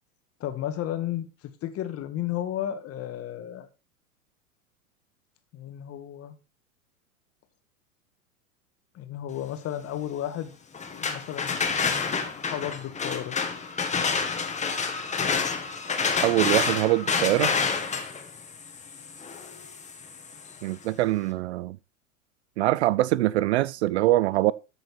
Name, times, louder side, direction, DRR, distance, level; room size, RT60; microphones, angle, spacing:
voice 1, 0.4-3.7 5.5-6.4 8.9-10.5 10.9-11.7 12.4-13.4, left 11 dB, 30° left, 1.9 m, -33 dB
sound 1, 10.7-20.6, left 5 dB, 15° left, 2.0 m, -29 dB
voice 2, 16.2-17.5 20.6-21.8 22.6-24.5, right 16 dB, 50° right, 0.6 m, -23 dB
13.5 x 6.4 x 4.3 m
figure-of-eight pair, 95°, 43 cm